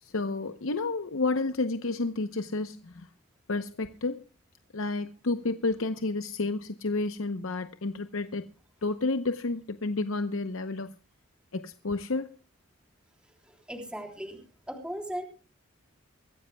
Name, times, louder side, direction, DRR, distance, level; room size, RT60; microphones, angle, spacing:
voice 1, 0.0-3.1 3.5-4.2 4.7-8.5 8.8-11.0 11.5-12.3, left 3 dB, 70° left, 0.8 m, -30 dB
voice 2, 13.4-14.4 14.7-15.2, equal, 5° right, 3.3 m, -37 dB
24.0 x 15.0 x 2.3 m
head